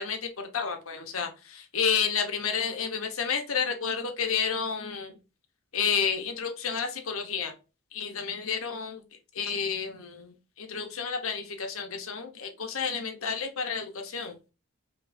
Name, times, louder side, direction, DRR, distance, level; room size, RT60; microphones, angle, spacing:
voice 1, 0.0-5.1 5.7-7.5 7.9-9.0 9.3-14.4, left 6 dB, 75° left, 1.0 m, -31 dB
5.2 x 3.0 x 2.6 m
head